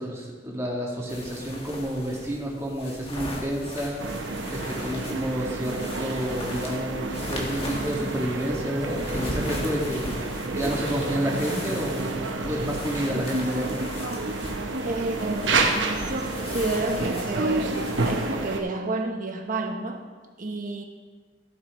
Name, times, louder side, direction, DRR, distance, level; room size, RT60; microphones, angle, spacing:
voice 1, 0.0-4.1 4.5-10.1 10.5-13.8, equal, 15° right, -3 dB, 2.0 m, -30 dB
sound 1, 1.1-18.3, left 1 dB, 30° left, 1.8 m, -38 dB
sound 2, 4.0-18.6, right 3 dB, 85° right, 1.0 m, -29 dB
voice 2, 14.8-17.8 18.0-20.1 20.4-20.8, right 2 dB, 50° right, 4 dB, 1.1 m, -30 dB
16.0 x 7.7 x 3.2 m, 1.4 s
head